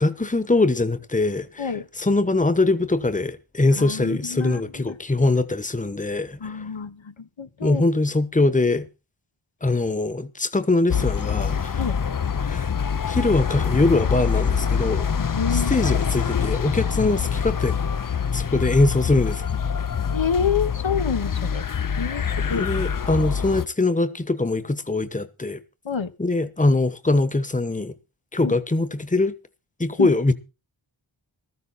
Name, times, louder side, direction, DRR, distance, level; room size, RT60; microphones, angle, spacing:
voice 1, 0.0-6.6 7.6-8.9 9.6-11.9 12.4-12.7 13.1-15.1 15.5-17.7 18.3-19.4 22.5-25.6 26.2-27.9 28.3-29.3 29.8-30.3, left 2 dB, 15° left, 1.2 m, -22 dB
voice 2, 3.8-4.9 6.4-7.8 11.8-12.0 15.2-15.8 20.1-21.6 22.0-22.2 22.5-22.7 25.8-26.1 28.4-28.5 30.0-30.1, left 6 dB, 70° left, 1.4 m, -27 dB
sound 1, 10.9-23.7, left 7 dB, 45° left, 0.7 m, -25 dB
15.0 x 13.5 x 4.2 m
wide cardioid pair, 60°, 47 cm